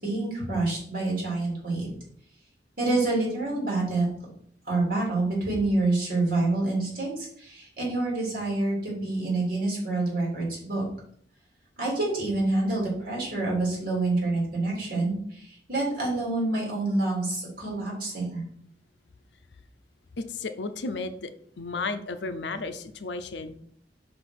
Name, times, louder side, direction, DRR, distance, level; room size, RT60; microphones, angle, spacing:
voice 1, 0.0-1.9 2.8-4.0 4.7-10.8 11.8-18.4, right 2 dB, 55° right, -4 dB, 3.3 m, -27 dB
voice 2, 20.2-21.3 21.6-23.6, left 3 dB, 75° left, 10 dB, 0.6 m, -33 dB
5.5 x 4.4 x 5.9 m, 0.63 s
head